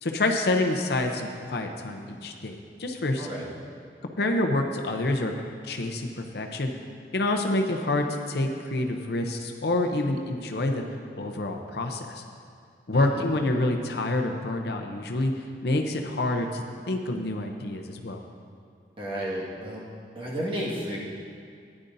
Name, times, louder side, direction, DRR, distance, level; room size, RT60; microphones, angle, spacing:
voice 1, 0.0-3.3 4.2-5.3 5.6-6.7 7.1-10.8 11.1-12.2 12.9-15.3 15.6-18.2, left 2 dB, 65° left, 3 dB, 0.7 m, -27 dB
voice 2, 3.2-3.5 12.9-13.3 19.0-19.8 20.2-21.0, equal, 30° right, -5 dB, 1.8 m, -32 dB
14.0 x 9.8 x 2.7 m, 2.2 s
head